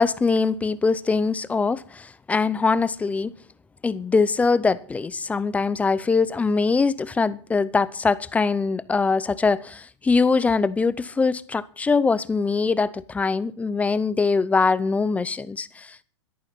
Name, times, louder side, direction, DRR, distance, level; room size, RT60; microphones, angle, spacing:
voice 1, 0.0-3.3 3.8-16.0, left 4 dB, 10° left, 0.6 m, -22 dB
13.5 x 11.0 x 5.9 m
hypercardioid pair, 135°, 15 cm